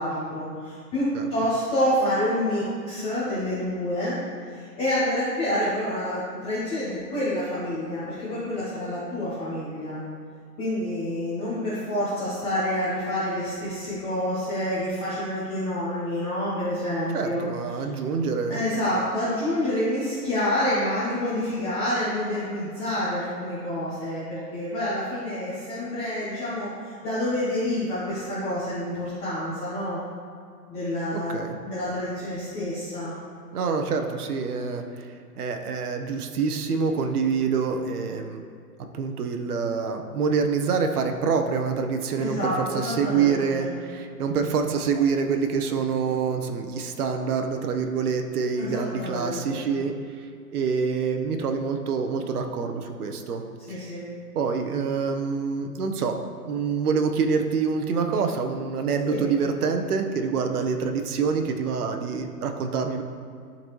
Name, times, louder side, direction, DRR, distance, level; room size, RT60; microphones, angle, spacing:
voice 1, 0.0-4.2 4.5-10.0 10.6-17.4 17.7-17.8 18.5-30.0 30.7-33.1 42.2-43.7 48.6-49.6 53.7-54.0 59.1-59.2, left 1 dB, 15° left, -10 dB, 0.8 m, -28 dB
voice 2, 17.1-18.6 31.1-31.6 33.5-38.4 38.9-53.4 53.7-53.9 54.3-56.1 56.4-63.0, right 5 dB, 70° right, 5 dB, 0.8 m, -26 dB
11.5 x 4.0 x 3.1 m, 2.3 s
hypercardioid pair, 155°, 48 cm